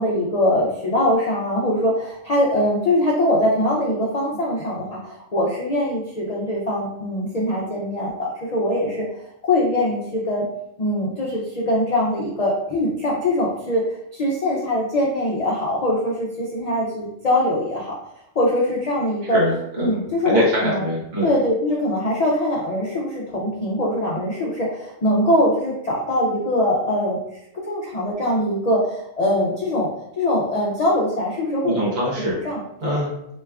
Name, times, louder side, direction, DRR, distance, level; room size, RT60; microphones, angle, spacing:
voice 1, 0.0-9.0 9.4-10.4 10.8-13.8 14.1-17.9 18.4-19.4 19.8-20.8 21.2-27.2 27.5-29.9 30.2-31.8 32.2-33.0, left 1 dB, 80° left, -4 dB, 0.3 m, -22 dB
voice 2, 19.3-20.0 20.2-21.3 31.6-32.3 32.8-33.1, equal, 90° right, -5 dB, 1.4 m, -23 dB
3.0 x 2.3 x 3.3 m, 0.80 s
omnidirectional pair, 1.4 m